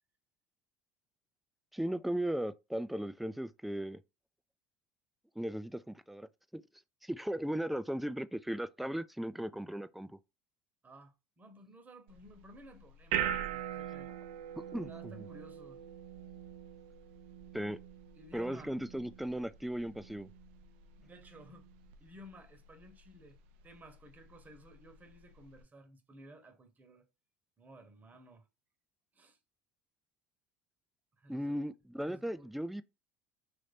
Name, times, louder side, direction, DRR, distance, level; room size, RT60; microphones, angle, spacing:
voice 1, 1.7-4.0 5.4-6.3 6.5-6.6 7.0-10.2 14.7-14.9 15.2-15.3 17.5-17.8 18.3-20.3 31.3-32.8, right 1 dB, ahead, 0.3 m, -37 dB
voice 2, 10.8-14.1 14.9-15.8 18.2-18.8 21.0-21.7 22.0-23.4 23.6-27.1 27.6-28.5 29.1-29.4 31.2-31.5 32.0-32.5, right 1 dB, 25° right, 0.9 m, -55 dB
sound 1, 12.1-25.6, right 10 dB, 75° right, 0.4 m, -43 dB
3.1 x 2.6 x 3.3 m
hypercardioid pair, 80°, 6 cm